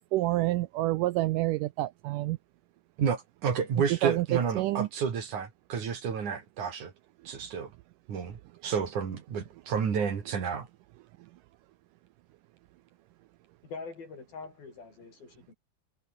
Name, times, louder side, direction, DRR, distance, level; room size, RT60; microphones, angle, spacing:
voice 1, 0.1-2.4 4.0-4.9, right 17 dB, 80° right, 2.0 m, -28 dB
voice 2, 3.0-6.9 7.3-7.7 8.1-10.7, right 6 dB, 55° right, 4.2 m, -31 dB
voice 3, 13.6-15.5, left 4 dB, 80° left, 8.7 m, -44 dB
omnidirectional pair, 4.2 m